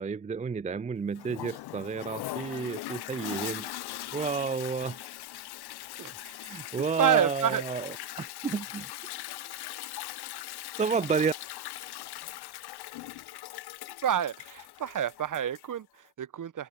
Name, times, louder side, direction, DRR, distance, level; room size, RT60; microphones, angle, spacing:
voice 1, 0.0-3.7 4.1-5.2 6.0-8.9 10.8-11.3, right 5 dB, 15° right, 0.5 m, -31 dB
Toilet flush, 1.2-15.8, left 16 dB, 60° left, 0.9 m, -40 dB
voice 2, 7.0-7.6 14.0-16.7, right 9 dB, 45° right, 1.2 m, -28 dB
open air
hypercardioid pair, 45°, 43 cm